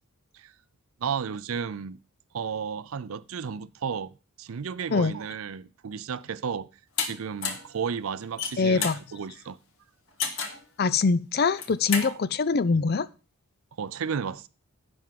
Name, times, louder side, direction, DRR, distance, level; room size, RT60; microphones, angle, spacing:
voice 1, 1.0-2.0 2.3-6.7 7.0-9.6 12.0-12.2 13.8-14.5, right 6 dB, 75° right, 0.5 m, -33 dB
sound 1, 7.0-7.1 7.4-7.7 8.2-9.0 10.2-10.6 11.5-12.1, left 6 dB, 70° left, 1.7 m, -30 dB
voice 2, 8.6-9.0 10.8-13.1, left 4 dB, 45° left, 0.4 m, -23 dB
10.5 x 3.7 x 7.4 m
head